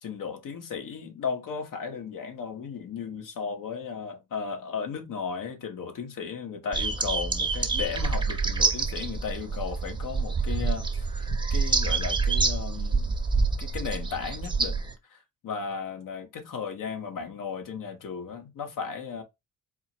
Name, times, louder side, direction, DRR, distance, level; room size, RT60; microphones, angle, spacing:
voice 1, 0.0-13.1 13.6-14.8 15.1-19.2, left 6 dB, 65° left, 1.2 m, -35 dB
sound 1, 6.7-14.9, right 4 dB, 15° right, 0.7 m, -27 dB
4.4 x 2.1 x 4.4 m
cardioid pair, 100°, 35 cm